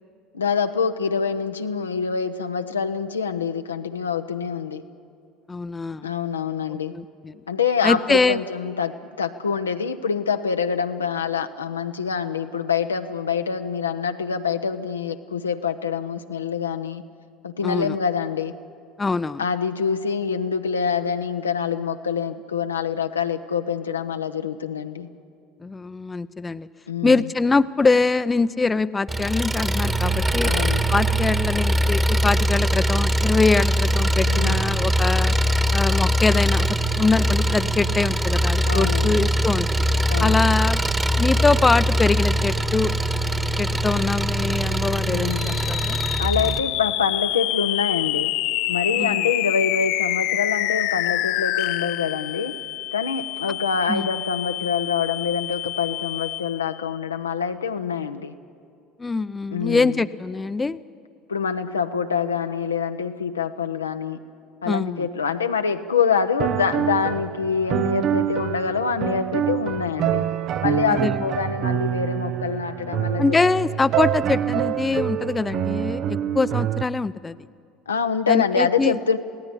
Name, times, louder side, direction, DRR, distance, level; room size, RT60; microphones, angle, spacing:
voice 1, 0.3-4.9 6.0-7.0 7.5-17.0 17.4-18.5 19.4-25.1 26.9-27.2 30.4-30.8 34.3-34.6 38.7-39.3 40.1-40.4 45.1-45.6 46.2-48.3 48.7-52.6 52.9-58.3 59.5-60.0 61.3-64.3 64.6-70.3 70.6-73.2 77.9-79.2, left 6 dB, 85° left, 7 dB, 0.9 m, -25 dB
voice 2, 5.5-6.1 6.9-7.4 7.8-8.4 17.6-18.0 19.0-19.4 25.6-26.7 27.0-30.5 30.9-35.3 35.7-39.8 40.2-40.8 41.2-42.9 43.6-46.0 49.0-49.3 53.9-54.1 59.0-60.8 64.6-65.1 70.9-71.2 73.2-77.4 78.3-79.0, left 3 dB, 20° left, 13 dB, 0.7 m, -23 dB
Engine, 29.1-46.6, equal, 15° right, 1.5 m, -22 dB
sound 1, 45.3-56.8, left 16 dB, 60° left, 0.5 m, -27 dB
sound 2, 66.4-76.8, right 10 dB, 50° right, 0.8 m, -26 dB
27.0 x 17.5 x 10.0 m, 2.4 s
figure-of-eight pair, 65°, 0 cm